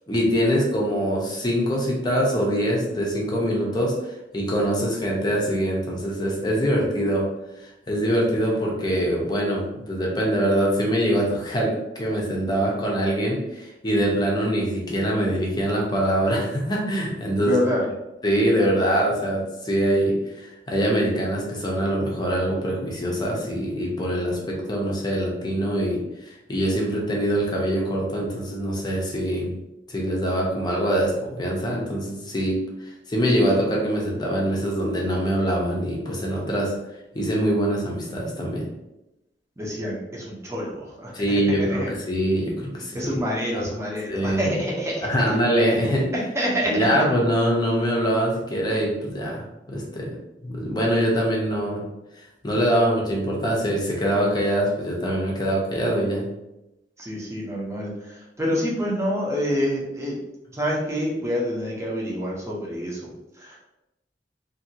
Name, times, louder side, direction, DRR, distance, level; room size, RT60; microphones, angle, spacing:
voice 1, 0.1-3.9 4.3-7.2 7.6-17.6 18.2-26.0 26.5-29.5 29.9-32.6 33.1-36.7 37.1-38.7 41.1-43.2 43.5-43.7 44.1-44.5 45.0-46.1 46.7-50.1 50.4-51.8 52.4-56.3, equal, 25° left, -3 dB, 0.7 m, -23 dB
voice 2, 17.5-17.8 39.6-41.9 42.9-45.4 46.1-46.9 57.0-60.2 60.5-63.6, equal, 15° right, -4 dB, 0.8 m, -27 dB
2.9 x 2.7 x 2.7 m, 0.91 s
head